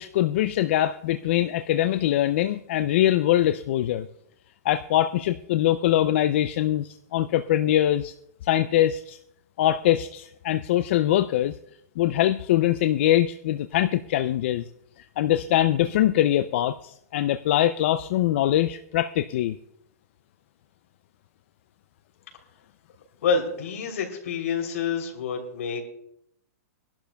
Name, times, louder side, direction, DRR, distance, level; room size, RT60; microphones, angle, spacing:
voice 1, 0.0-4.1 4.6-8.1 8.4-9.2 9.6-11.5 12.0-14.7 15.2-19.6, left 13 dB, 50° left, 10 dB, 0.4 m, -23 dB
voice 2, 23.2-25.8, left 5 dB, 70° left, 2 dB, 3.2 m, -27 dB
24.0 x 11.5 x 2.3 m, 0.75 s
hypercardioid pair, 160°, 8 cm